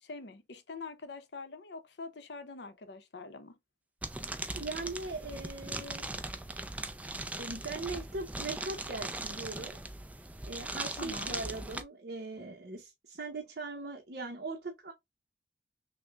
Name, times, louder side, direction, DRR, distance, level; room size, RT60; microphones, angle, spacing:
voice 1, 0.0-3.5 11.0-11.4, left 3 dB, 80° left, 0.7 m, -45 dB
sound 1, 4.0-11.8, right 2 dB, 10° right, 0.3 m, -39 dB
voice 2, 4.6-6.1 7.4-9.8 10.4-14.9, right 3 dB, 65° right, 0.8 m, -40 dB
6.1 x 2.1 x 2.2 m
head